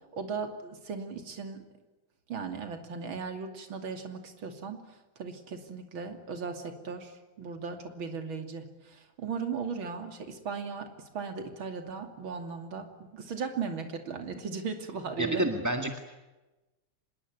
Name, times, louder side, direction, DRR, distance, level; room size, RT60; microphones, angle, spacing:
voice 1, 0.1-1.7 2.3-4.8 5.2-15.4, right 5 dB, 45° right, 6 dB, 3.4 m, -37 dB
voice 2, 15.2-16.0, right 1 dB, 10° right, 4 dB, 1.1 m, -29 dB
26.0 x 21.5 x 9.6 m, 1.1 s
omnidirectional pair, 3.3 m